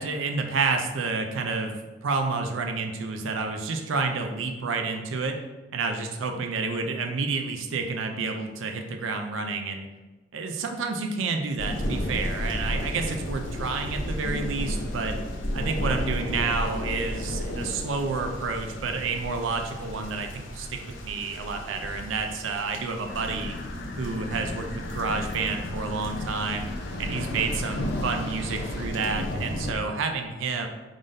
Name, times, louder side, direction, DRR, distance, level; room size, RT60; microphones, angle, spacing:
voice 1, 0.0-1.8 2.0-5.4 5.7-9.9 10.3-15.2 15.5-23.5 24.0-26.7 27.0-30.7, right 4 dB, 85° right, 5 dB, 0.4 m, -29 dB
sound 1, 11.6-29.7, left 1 dB, 85° left, 0.8 m, -33 dB
sound 2, 23.1-28.9, left 2 dB, 55° left, 0.6 m, -36 dB
5.0 x 3.7 x 2.6 m, 1.2 s
head